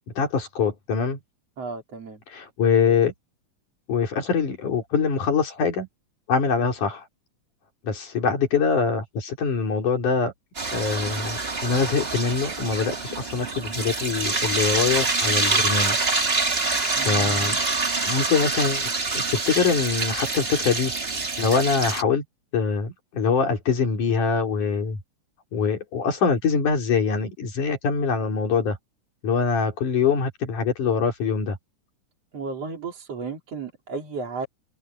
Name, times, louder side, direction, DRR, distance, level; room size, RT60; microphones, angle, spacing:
voice 1, 0.2-1.2 2.3-3.1 3.9-5.9 6.3-7.1 7.8-10.3 10.7-16.0 17.0-17.6 18.0-20.9 21.4-22.2 22.5-25.0 25.5-28.8 29.2-31.6, left 5 dB, 75° left, 5.3 m, -24 dB
voice 2, 1.6-2.2 17.0-17.6 32.3-34.5, right 4 dB, 50° right, 4.3 m, -34 dB
sound 1, 10.5-22.0, right 3 dB, 25° right, 1.7 m, -26 dB
open air
omnidirectional pair, 3.6 m